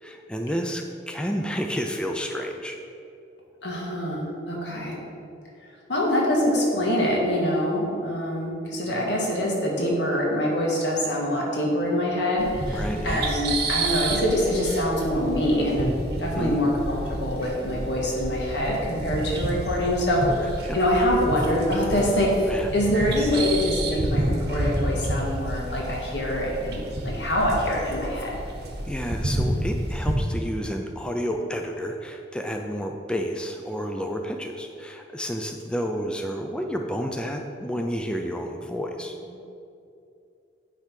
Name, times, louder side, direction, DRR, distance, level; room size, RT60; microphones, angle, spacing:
voice 1, 0.0-2.8 8.9-9.1 12.7-13.3 16.3-16.7 20.3-20.8 22.5-22.7 28.8-39.1, equal, 5° left, 3 dB, 0.4 m, -30 dB
voice 2, 3.6-5.0 5.9-20.3 20.7-28.4, equal, 85° left, -2 dB, 1.6 m, -25 dB
sound 1, 12.4-30.1, right 1 dB, 65° right, 1.0 m, -30 dB
9.1 x 3.4 x 5.8 m, 2.6 s
head